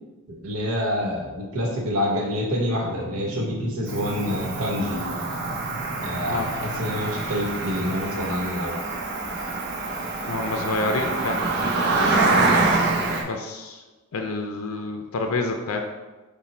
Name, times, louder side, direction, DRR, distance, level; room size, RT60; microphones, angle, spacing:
voice 1, 0.4-5.1 6.0-8.8, left 1 dB, 85° right, 0 dB, 1.0 m, -27 dB
sound 1, 2.7-8.0, right 1 dB, ahead, 0.5 m, -36 dB
Cricket, 3.9-13.2, right 3 dB, 50° right, 0.7 m, -25 dB
voice 2, 10.3-11.4 13.2-13.8 14.1-15.9, left 3 dB, 75° left, 3 dB, 0.5 m, -28 dB
5.7 x 2.2 x 4.2 m, 1.2 s
head